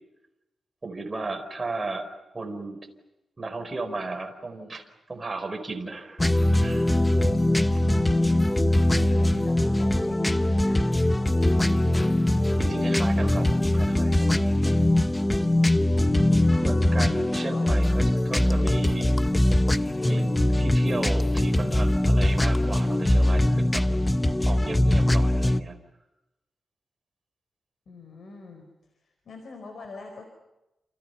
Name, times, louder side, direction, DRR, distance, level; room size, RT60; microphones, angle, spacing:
voice 1, 0.8-2.1 2.3-2.8 3.4-7.0 8.7-9.0 12.6-13.5 13.7-14.4 16.6-19.1 20.0-23.8 24.5-25.8, right 3 dB, 25° right, 3 dB, 4.9 m, -35 dB
sound 1, 6.2-25.6, left 1 dB, 10° left, 0.9 m, -22 dB
voice 2, 7.9-8.5 8.9-10.9 15.8-16.8 17.5-17.6 27.9-28.7 29.0-30.2, left 3 dB, 55° left, 4 dB, 4.7 m, -43 dB
29.5 x 28.5 x 5.8 m, 0.94 s
wide cardioid pair, 155°, 0 cm